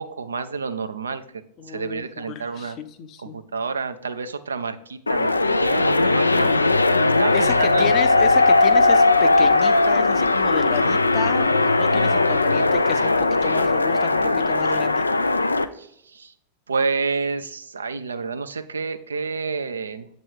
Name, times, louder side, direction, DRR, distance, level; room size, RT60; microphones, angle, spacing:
voice 1, 0.0-2.8 3.2-6.5 7.2-8.0 15.7-16.3 16.7-20.1, right 4 dB, 75° right, 10 dB, 0.4 m, -29 dB
voice 2, 1.6-3.4 6.3-6.6 7.3-15.0, left 7 dB, 35° left, 10 dB, 0.5 m, -32 dB
sound 1, 5.1-15.6, left 3 dB, 80° left, 0.3 m, -18 dB
7.8 x 3.0 x 4.5 m, 0.73 s
figure-of-eight pair, 90°, 0 cm